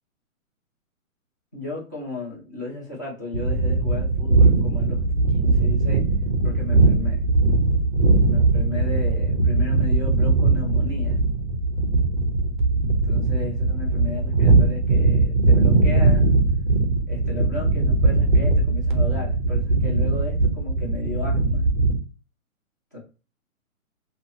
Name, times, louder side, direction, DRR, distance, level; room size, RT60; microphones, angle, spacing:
voice 1, 1.5-6.1 6.4-7.2 8.3-11.2 13.1-16.4 17.1-21.7 22.9-23.0, left 3 dB, 15° left, -6 dB, 0.5 m, -34 dB
sound 1, 3.3-22.0, right 3 dB, 40° right, 0.4 m, -20 dB
2.6 x 2.3 x 2.8 m, 0.33 s
hypercardioid pair, 160°, 42 cm